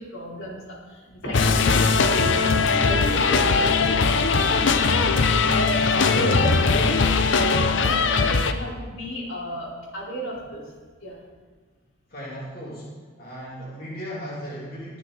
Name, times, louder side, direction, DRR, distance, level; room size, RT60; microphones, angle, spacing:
voice 1, 0.0-10.7 11.0-11.2, equal, 90° left, -6 dB, 4.4 m, -33 dB
sound 1, 1.3-8.5, left 4 dB, 65° left, 0.7 m, -20 dB
voice 2, 12.1-12.9 13.2-15.0, equal, 45° left, -7 dB, 2.9 m, -36 dB
22.0 x 7.3 x 4.1 m, 1.4 s
head